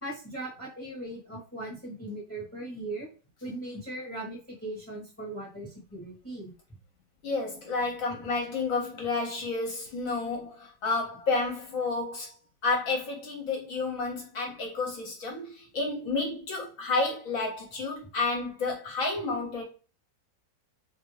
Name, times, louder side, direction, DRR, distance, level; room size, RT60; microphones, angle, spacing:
voice 1, 0.0-3.1 3.4-6.5, right 1 dB, 10° left, 0.7 m, -39 dB
voice 2, 7.2-12.3 12.6-19.6, left 3 dB, 60° left, 0.9 m, -30 dB
2.7 x 2.6 x 3.1 m
omnidirectional pair, 1.9 m